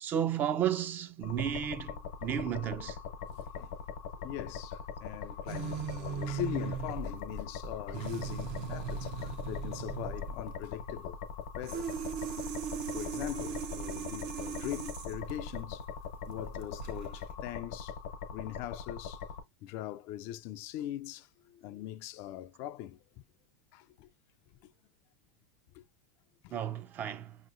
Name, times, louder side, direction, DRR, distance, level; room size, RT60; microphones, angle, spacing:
voice 1, 0.0-3.0 26.5-27.4, right 9 dB, 35° right, 0.4 m, -33 dB
sound 1, 1.2-19.4, left 6 dB, 85° left, 0.8 m, -42 dB
voice 2, 3.3-3.8 4.2-11.2 11.6-11.9 12.9-15.8 16.3-17.9 18.3-19.2 19.6-23.2 23.7-24.1 24.6-24.7 25.7-25.8 26.4-26.6, left 12 dB, 55° left, 0.3 m, -41 dB
sound 2, 5.5-17.3, right 7 dB, 60° right, 0.7 m, -39 dB
6.0 x 2.9 x 2.5 m
supercardioid pair, 120°, 6 cm